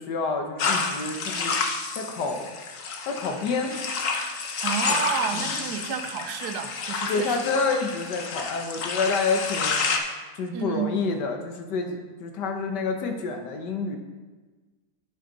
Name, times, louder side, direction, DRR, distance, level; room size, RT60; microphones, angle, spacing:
voice 1, 0.0-1.5 1.9-2.5 3.1-3.8 4.9-5.0 5.3-5.5 7.1-9.8 10.4-14.0, left 4 dB, 85° left, 4 dB, 1.7 m, -28 dB
sound 1, 0.6-10.0, left 4 dB, 55° left, 1.2 m, -29 dB
voice 2, 4.6-7.4 10.5-10.9, right 7 dB, 75° right, 7 dB, 1.3 m, -30 dB
9.6 x 8.3 x 4.0 m, 1.3 s
omnidirectional pair, 1.8 m